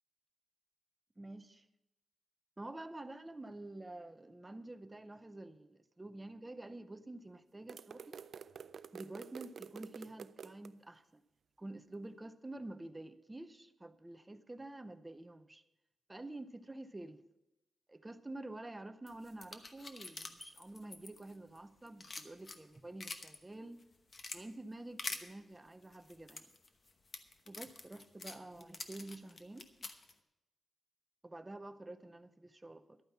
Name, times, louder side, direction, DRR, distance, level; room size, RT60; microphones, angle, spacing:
voice 1, 1.2-1.7 2.6-8.2 8.9-11.2 11.6-15.6 16.1-17.2 17.9-23.8 24.3-26.5 27.5-29.9 31.2-33.0, right 2 dB, 15° right, 0.6 m, -49 dB
sound 1, 7.7-10.7, right 7 dB, 60° right, 0.4 m, -49 dB
sound 2, 19.1-21.6 21.9-23.4 23.8-24.4 25.0-25.2 25.9-30.1, left 3 dB, 35° left, 0.9 m, -46 dB
12.0 x 9.0 x 5.9 m
wide cardioid pair, 140°, 0 cm